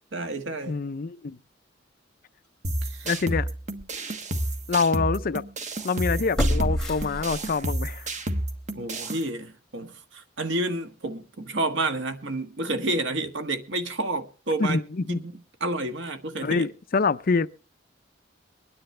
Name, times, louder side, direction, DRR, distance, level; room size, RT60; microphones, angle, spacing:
voice 1, 0.1-0.8 2.8-3.1 8.7-14.8 15.1-15.3 15.6-16.7, right 2 dB, 80° right, 1.5 m, -30 dB
voice 2, 0.7-1.4 3.0-3.5 4.7-5.4 5.8-8.1 14.6-15.2 16.4-17.5, left 4 dB, 50° left, 0.5 m, -25 dB
sound 1, 2.6-9.2, right 1 dB, 40° right, 1.3 m, -31 dB
sound 2, 3.1-3.2 3.8-3.9 6.4-7.8 8.2-8.3, left 1 dB, 5° left, 2.6 m, -27 dB
23.5 x 10.0 x 3.2 m
head